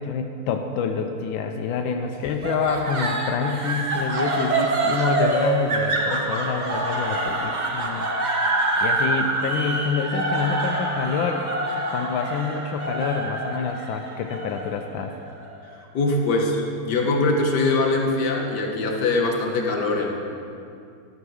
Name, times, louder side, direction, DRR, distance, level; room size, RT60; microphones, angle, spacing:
voice 1, 0.0-8.4 8.8-11.5 11.9-15.1, left 5 dB, 90° left, 5 dB, 1.4 m, -27 dB
sound 1, 2.4-15.6, right 2 dB, 40° right, 0.6 m, -26 dB
voice 2, 15.9-20.1, left 2 dB, 60° left, 1 dB, 1.7 m, -22 dB
12.0 x 5.9 x 6.4 m, 2.5 s
omnidirectional pair, 2.1 m